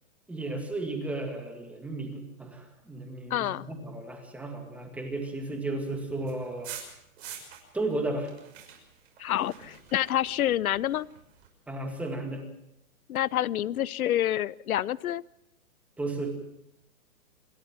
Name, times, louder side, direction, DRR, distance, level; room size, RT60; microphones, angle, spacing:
voice 1, 0.3-6.7 7.7-8.3 11.7-12.4 16.0-16.4, right 2 dB, 5° right, 4 dB, 2.1 m, -34 dB
voice 2, 3.3-3.6 9.2-11.1 13.1-15.2, left 12 dB, 80° left, 22 dB, 0.7 m, -28 dB
sound 1, 6.3-7.9 8.1-11.5, right 8 dB, 45° right, 6.1 m, -46 dB
27.0 x 13.0 x 7.5 m, 0.81 s
hypercardioid pair, 165°, 42 cm